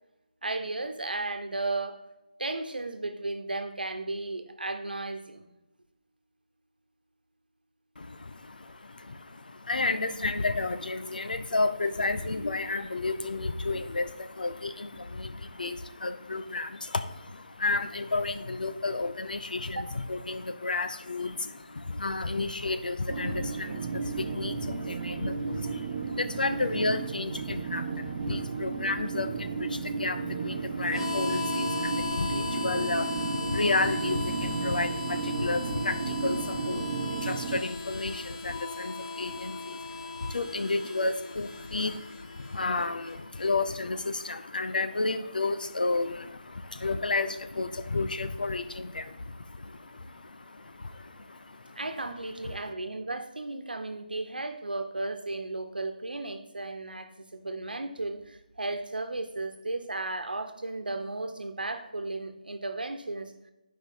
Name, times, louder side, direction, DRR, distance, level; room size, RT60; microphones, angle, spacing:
voice 1, 0.4-2.0 2.4-5.5 19.8-19.9 51.8-63.3, right 2 dB, 90° right, 7 dB, 1.1 m, -34 dB
voice 2, 8.0-51.9 52.4-52.7, left 3 dB, 70° left, 10 dB, 0.7 m, -32 dB
sound 1, 23.1-37.6, right 5 dB, 25° right, 0.5 m, -33 dB
Harmonica, 30.9-43.5, left 4 dB, 30° left, 1.1 m, -37 dB
10.5 x 5.2 x 3.8 m, 0.98 s
figure-of-eight pair, 165°, 5 cm